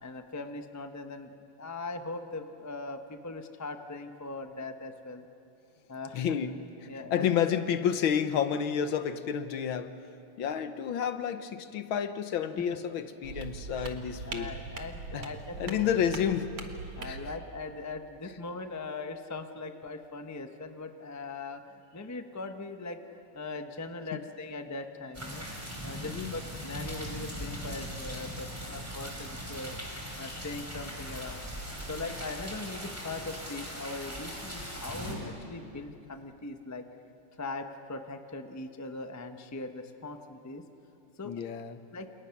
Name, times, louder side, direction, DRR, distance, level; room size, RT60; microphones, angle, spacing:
voice 1, 0.0-5.2 5.9-6.4 6.9-7.3 13.7-13.9 14.2-15.9 17.0-25.5 25.8-29.8 30.2-31.4 31.9-36.8 37.4-40.6 41.2-41.3 41.9-42.1, left 3 dB, 15° left, 6 dB, 0.6 m, -40 dB
voice 2, 6.1-6.6 7.1-9.9 10.4-14.5 15.1-15.3 15.6-16.5 17.0-17.2 26.0-26.3 30.3-30.4 41.2-41.8, left 8 dB, 70° left, 10 dB, 1.7 m, -30 dB
sound 1, 13.2-17.3, right 4 dB, 75° right, 2.6 m, -41 dB
sound 2, 25.1-35.1, equal, 5° right, 4.8 m, -40 dB
30.0 x 28.0 x 5.9 m, 2.8 s
omnidirectional pair, 2.4 m